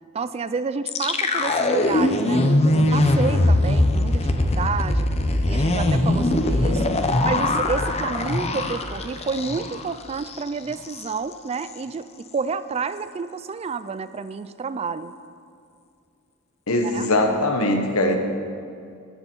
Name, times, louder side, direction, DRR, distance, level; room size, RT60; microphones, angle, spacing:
voice 1, 0.1-5.1 5.5-6.9 7.2-12.1 12.3-15.1 16.8-17.1, right 5 dB, 30° right, 14 dB, 0.3 m, -30 dB
sound 1, 0.9-9.9 10.2-10.4 10.7-11.1, left 1 dB, 30° left, 0.7 m, -21 dB
voice 2, 16.7-18.2, left 1 dB, 80° left, 5 dB, 1.3 m, -21 dB
12.5 x 10.5 x 4.6 m, 2.4 s
head